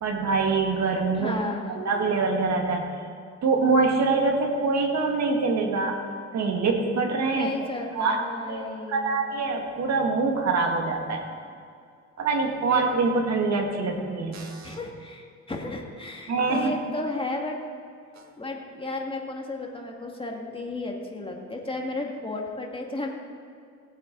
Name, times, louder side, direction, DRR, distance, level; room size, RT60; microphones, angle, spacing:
voice 1, 0.0-1.3 1.8-2.9 3.4-6.0 6.3-7.5 7.9-8.2 8.5-8.6 8.9-11.3 12.2-14.8 16.3-16.8, right 4 dB, 60° right, 2 dB, 2.0 m, -24 dB
voice 2, 1.2-1.7 7.3-9.2 12.7-12.8 14.6-17.6 18.4-23.1, left 2 dB, 15° left, 0 dB, 2.1 m, -33 dB
18.0 x 8.2 x 4.0 m, 2.4 s
cardioid pair, 90°, 30 cm